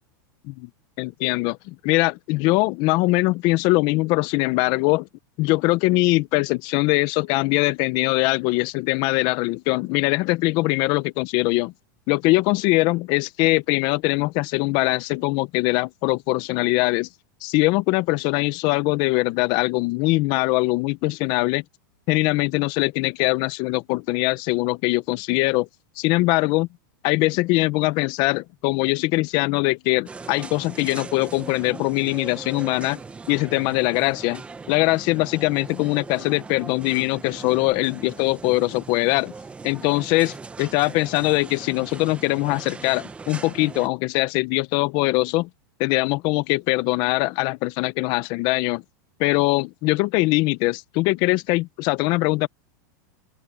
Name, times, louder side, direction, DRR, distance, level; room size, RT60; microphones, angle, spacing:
voice 1, 1.0-5.1 5.4-11.7 12.1-17.1 17.4-21.6 22.1-25.7 26.0-26.7 27.0-33.0 33.3-34.4 34.7-39.3 39.6-45.5 45.8-48.8 49.2-52.5, left 22 dB, 45° left, 0.8 m, -22 dB
sound 1, 30.1-43.9, right 4 dB, 10° right, 1.3 m, -40 dB
open air
supercardioid pair, 145°, 11 cm